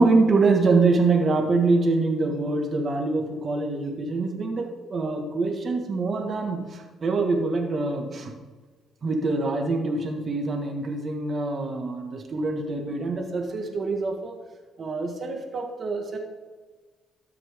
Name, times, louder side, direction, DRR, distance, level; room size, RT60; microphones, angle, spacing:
voice 1, 0.0-8.3 9.0-14.5 14.8-16.2, right 3 dB, 45° right, 3 dB, 1.7 m, -24 dB
13.5 x 11.5 x 3.7 m, 1.3 s
cardioid pair, 90°, 0 cm